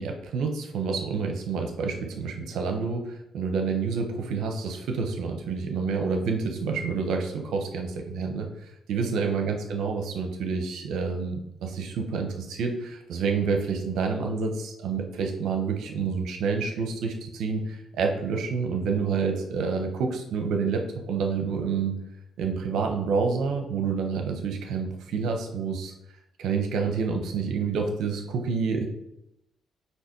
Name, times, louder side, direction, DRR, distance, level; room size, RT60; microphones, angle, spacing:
voice 1, 0.0-22.0 22.4-25.9 26.4-28.9, right 5 dB, 80° right, 4 dB, 1.0 m, -28 dB
8.3 x 3.1 x 4.5 m, 0.85 s
cardioid pair, 90°, 0 cm